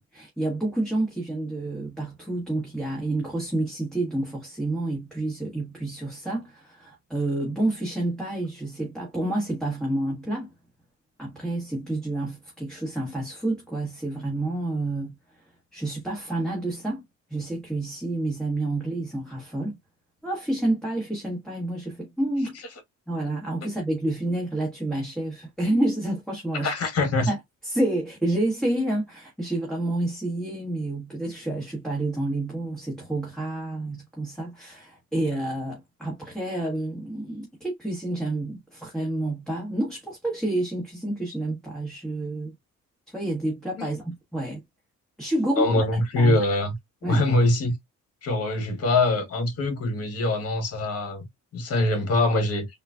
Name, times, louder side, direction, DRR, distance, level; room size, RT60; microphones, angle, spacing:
voice 1, 0.0-10.5 11.2-15.4 15.7-17.0 17.3-19.8 20.2-22.6 23.1-26.7 27.3-27.4 27.6-42.5 43.1-44.6 45.2-45.8 46.2-46.4 47.0-47.2, right 1 dB, ahead, 1.2 m, -29 dB
voice 2, 26.6-27.3 43.8-43.9 45.6-46.7 47.1-47.7 48.2-51.3 51.5-52.7, left 2 dB, 50° left, 1.2 m, -23 dB
3.8 x 2.3 x 2.3 m
cardioid pair, 90°, 30 cm